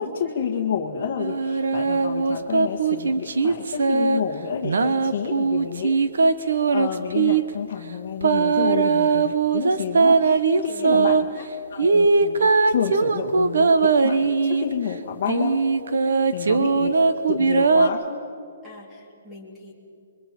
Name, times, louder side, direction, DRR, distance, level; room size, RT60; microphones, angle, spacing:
voice 1, 0.0-5.9 6.4-11.2 11.7-15.6 16.3-17.0 17.3-18.2, left 7 dB, 30° left, -1 dB, 1.7 m, -29 dB
sound 1, 1.2-4.2 4.6-7.4 8.2-11.2 11.8-14.7 15.3-17.9, right 4 dB, 75° right, 1.2 m, -20 dB
voice 2, 4.8-5.4 8.5-8.8 10.7-11.1 11.3-11.5 16.0-16.5 18.6-19.7, left 2 dB, ahead, -4 dB, 2.9 m, -42 dB
29.5 x 23.5 x 4.4 m, 2.6 s
hypercardioid pair, 180°, 0 cm